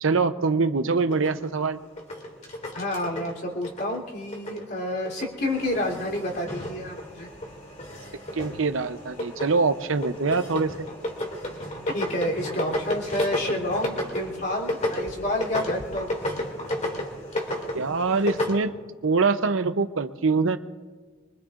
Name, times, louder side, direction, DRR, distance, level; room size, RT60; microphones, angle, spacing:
voice 1, 0.0-1.8 8.3-10.7 17.7-18.7 19.0-20.6, right 4 dB, 75° right, 10 dB, 0.7 m, -24 dB
sound 1, 1.1-4.6 4.9-18.6, left 1 dB, 35° left, 2.6 m, -33 dB
voice 2, 2.7-7.3 11.9-16.1, left 1 dB, 50° left, -1 dB, 3.3 m, -29 dB
24.0 x 23.5 x 2.5 m, 1.4 s
head